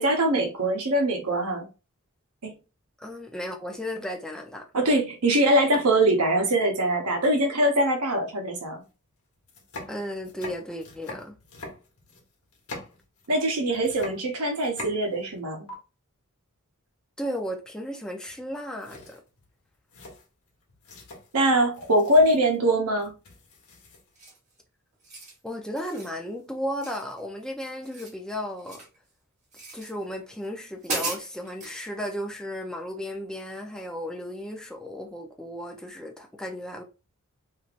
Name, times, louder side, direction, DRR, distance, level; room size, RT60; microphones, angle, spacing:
voice 1, 0.0-1.7 2.4-2.5 4.7-8.8 13.3-15.7 21.3-23.1, right 1 dB, 90° right, 0.9 m, -23 dB
voice 2, 3.0-4.7 9.9-11.3 17.2-19.2 25.4-28.8 29.7-36.8, equal, 5° left, 0.5 m, -34 dB
sound 1, 8.8-8.9 9.4-13.5 13.7-15.4 15.7-15.8 18.3-18.5 18.8-24.3, left 2 dB, 75° left, 1.1 m, -44 dB
sound 2, 24.2-24.5 24.9-25.4 25.8-26.1 26.8-27.5 27.7-29.0 29.5-29.9 30.4-30.5 30.8-31.8, right 2 dB, 35° right, 1.2 m, -36 dB
3.2 x 2.6 x 2.5 m
head